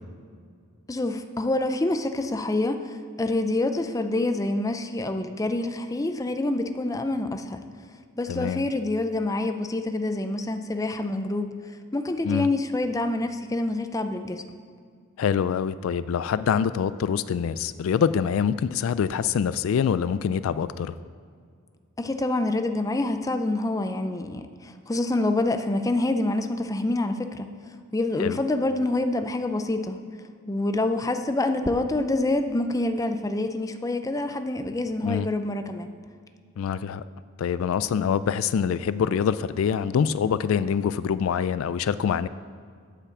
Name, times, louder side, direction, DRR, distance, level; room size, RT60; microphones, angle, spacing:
voice 1, 0.9-7.6 8.2-11.5 11.9-14.4 22.0-27.5 27.9-30.0 30.5-35.9, left 2 dB, 15° left, 8 dB, 0.5 m, -26 dB
voice 2, 8.3-8.7 12.2-12.5 15.2-20.9 28.2-28.4 35.0-35.3 36.6-37.0 37.4-42.3, left 7 dB, 85° left, 15 dB, 0.3 m, -25 dB
8.2 x 5.8 x 7.1 m, 2.2 s
head